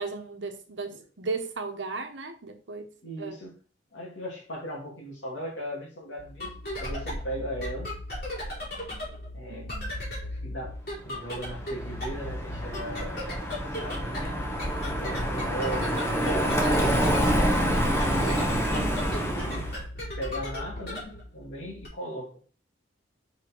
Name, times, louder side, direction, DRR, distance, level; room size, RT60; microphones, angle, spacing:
voice 1, 0.0-3.4 9.5-9.9 15.0-15.4 18.7-19.2, right 4 dB, 80° right, 1.0 m, -36 dB
voice 2, 3.0-3.5 3.9-7.9 9.3-9.7 10.4-10.8 11.0-13.2 13.6-14.4 14.9-17.9 18.2-18.5 19.2-19.7 20.2-22.4, right 1 dB, 90° left, 2.4 m, -38 dB
sound 1, 6.2-21.9, left 1 dB, 55° left, 3.3 m, -37 dB
Car passing by, 11.3-19.8, equal, 15° left, 1.1 m, -27 dB
4.9 x 4.4 x 4.5 m
head